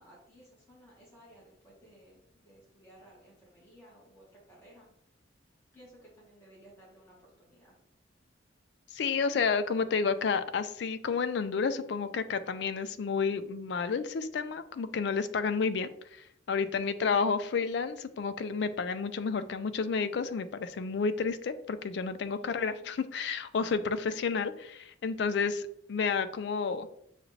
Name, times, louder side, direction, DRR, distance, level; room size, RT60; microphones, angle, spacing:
voice 1, 0.0-4.9 5.7-7.7 16.6-17.0 22.2-22.8, equal, 15° left, -6 dB, 1.3 m, -57 dB
voice 2, 8.9-25.6 25.9-26.9, left 5 dB, 60° left, 12 dB, 0.3 m, -31 dB
6.2 x 2.4 x 3.1 m, 0.72 s
head